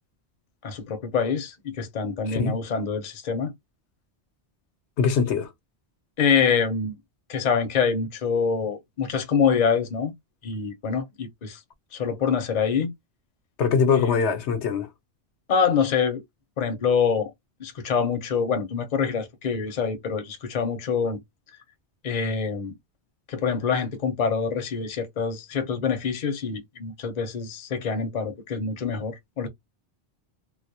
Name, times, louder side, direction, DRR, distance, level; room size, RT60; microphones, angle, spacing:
voice 1, 0.6-3.5 6.2-6.9 7.3-10.1 10.4-11.6 11.9-12.9 13.9-14.2 15.5-16.2 16.6-17.3 17.6-21.2 22.0-22.7 23.3-29.5, left 6 dB, 45° left, 0.7 m, -25 dB
voice 2, 2.3-2.6 5.0-5.5 13.6-14.9, left 6 dB, 85° left, 1.0 m, -22 dB
2.3 x 2.0 x 2.6 m
omnidirectional pair, 1.1 m